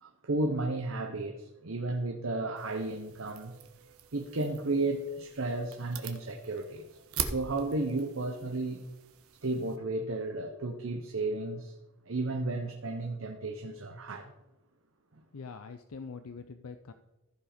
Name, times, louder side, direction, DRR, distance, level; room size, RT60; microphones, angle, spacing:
voice 1, 0.0-3.6 4.1-6.9 7.3-8.9 9.4-11.7 12.1-14.3 15.1-15.2, right 2 dB, 65° right, 0.9 m, -33 dB
sound 1, 2.6-9.8, right 7 dB, 90° right, 1.1 m, -43 dB
voice 2, 15.3-16.9, left 5 dB, 85° left, 0.5 m, -44 dB
14.5 x 5.0 x 5.1 m
head